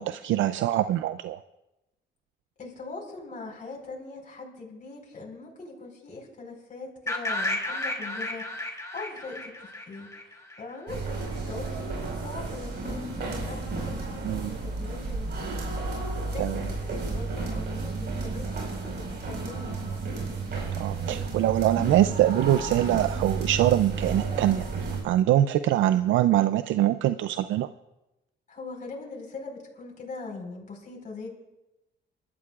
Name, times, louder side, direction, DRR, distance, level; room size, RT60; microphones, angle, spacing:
voice 1, 0.0-1.4 14.2-14.6 16.4-16.6 20.8-27.7, right 13 dB, 75° right, 11 dB, 0.4 m, -24 dB
voice 2, 2.6-20.0 28.5-31.3, left 3 dB, 40° left, -1 dB, 4.4 m, -42 dB
sound 1, 7.1-10.9, left 1 dB, 15° left, 2.5 m, -33 dB
sound 2, 10.9-25.0, right 3 dB, 60° right, 4.8 m, -32 dB
28.0 x 12.5 x 2.4 m, 0.96 s
cardioid pair, 90°, 20 cm